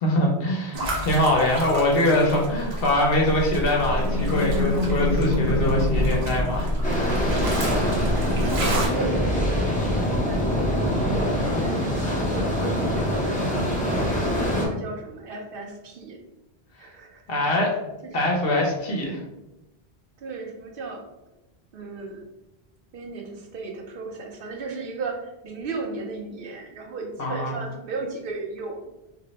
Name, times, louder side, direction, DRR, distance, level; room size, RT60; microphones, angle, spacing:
voice 1, 0.0-7.1 17.3-17.7 18.1-19.2 27.2-27.5, left 1 dB, 70° left, -1 dB, 0.8 m, -23 dB
sound 1, 0.7-8.9, equal, 80° right, 1.1 m, -29 dB
sound 2, 3.3-8.9 9.2-11.5, left 1 dB, 25° right, 0.7 m, -29 dB
sound 3, 6.8-14.7, equal, 10° left, 0.4 m, -24 dB
voice 2, 7.8-13.3 13.7-16.2 16.8-17.2 20.2-21.0 21.7-22.2 22.9-28.9, right 4 dB, 65° right, 2 dB, 0.7 m, -35 dB
2.5 x 2.0 x 3.9 m, 0.95 s
omnidirectional pair, 1.1 m